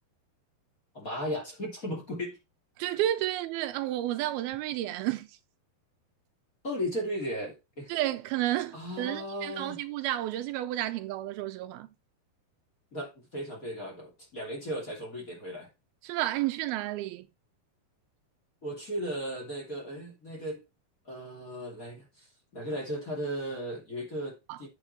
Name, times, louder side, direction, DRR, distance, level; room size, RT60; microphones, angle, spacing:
voice 1, 0.9-2.4 6.6-7.9 8.7-9.8 12.9-15.7 18.6-20.6 21.0-22.3 22.5-24.7, equal, 25° left, 2.9 m, -36 dB
voice 2, 2.8-5.3 7.9-11.9 16.0-17.3 24.5-24.6, right 14 dB, 85° right, 2.5 m, -31 dB
8.5 x 6.9 x 4.4 m
omnidirectional pair, 4.5 m